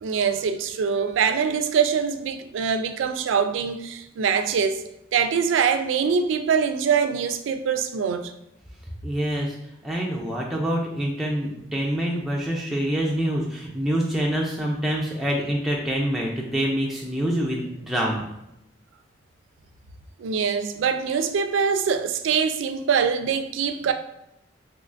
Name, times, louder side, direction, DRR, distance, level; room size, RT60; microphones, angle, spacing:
voice 1, 0.0-4.8 5.1-8.3 20.2-23.9, right 6 dB, 85° right, 0.3 m, -23 dB
voice 2, 9.0-9.6 9.8-18.3, equal, ahead, 0.3 m, -26 dB
3.3 x 3.0 x 2.5 m
head